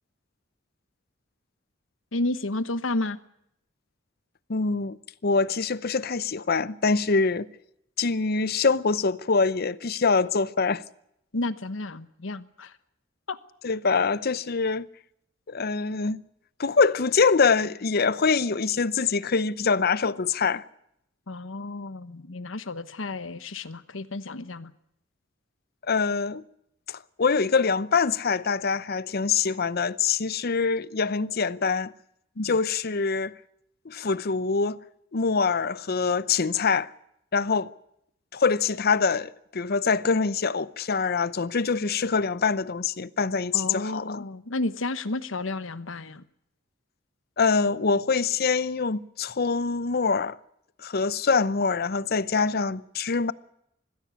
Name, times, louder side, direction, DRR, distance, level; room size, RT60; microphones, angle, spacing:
voice 1, 2.1-3.2 11.3-12.7 13.3-13.4 21.3-24.7 32.4-32.5 43.5-46.2, left 2 dB, 85° left, 1.2 m, -31 dB
voice 2, 4.5-5.0 5.2-7.5 8.0-10.8 13.6-14.9 15.5-16.2 16.6-20.6 25.9-26.4 26.9-31.9 32.4-33.3 33.8-34.8 35.1-36.9 37.3-37.7 38.3-44.2 47.4-50.4 50.8-53.3, left 4 dB, 50° left, 0.7 m, -24 dB
21.0 x 15.5 x 9.7 m
head